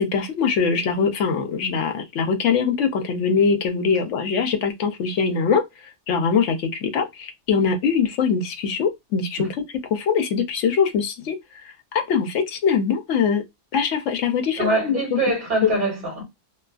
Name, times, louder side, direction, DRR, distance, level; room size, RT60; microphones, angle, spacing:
voice 1, 0.0-5.6 6.1-9.6 9.9-11.4 11.6-13.4 13.7-15.0, left 6 dB, 75° left, 0.9 m, -22 dB
voice 2, 14.6-16.2, right 2 dB, 50° right, 1.5 m, -23 dB
2.6 x 2.3 x 2.4 m
omnidirectional pair, 1.3 m